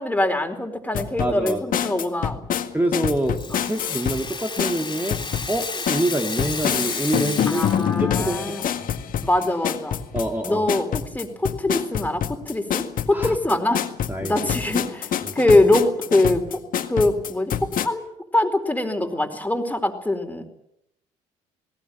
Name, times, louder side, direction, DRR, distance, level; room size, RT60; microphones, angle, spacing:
voice 1, 0.0-2.4 3.5-3.6 7.5-8.7 9.2-10.0 10.4-13.8 14.2-16.6 16.9-18.0 18.3-20.6, left 2 dB, 10° left, 6 dB, 4.4 m, -23 dB
sound 1, 0.9-4.2 4.6-17.9, left 9 dB, 60° left, 1.9 m, -26 dB
voice 2, 1.2-1.6 2.7-3.4 3.7-5.2 5.5-7.6 8.0-8.8 10.1-10.6 13.1-13.4 13.7-13.8 14.1-14.5 15.2-15.4, right 1 dB, 10° right, 3 dB, 2.4 m, -26 dB
Rattle (instrument), 2.9-8.0, left 4 dB, 30° left, 3.7 m, -32 dB
19.0 x 18.5 x 9.2 m, 0.79 s
supercardioid pair, 60°, 16 cm